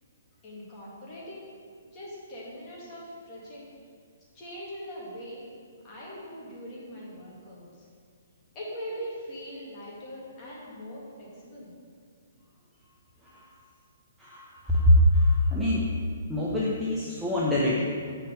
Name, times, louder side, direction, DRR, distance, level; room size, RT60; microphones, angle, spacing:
voice 1, 0.4-1.5 1.9-3.7 4.3-5.4 5.8-7.9 8.5-11.7, equal, 20° left, -6 dB, 2.0 m, -41 dB
voice 2, 14.2-15.9 16.3-17.8, left 1 dB, 5° right, -8 dB, 0.7 m, -23 dB
6.9 x 4.4 x 6.6 m, 2.1 s
hypercardioid pair, 170°, 0 cm